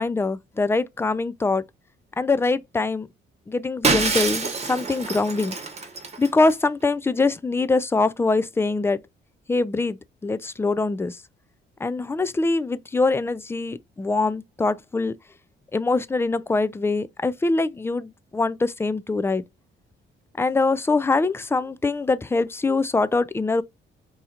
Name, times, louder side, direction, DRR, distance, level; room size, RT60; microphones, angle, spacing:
voice 1, 0.0-1.6 2.2-3.1 3.5-5.6 6.2-9.0 9.5-11.2 11.8-15.1 15.7-19.4 20.4-23.6, left 3 dB, 10° left, 0.3 m, -23 dB
Shatter, 3.8-6.5, right 4 dB, 35° right, 1.0 m, -26 dB
4.3 x 2.7 x 2.4 m
cardioid pair, 90°, 20 cm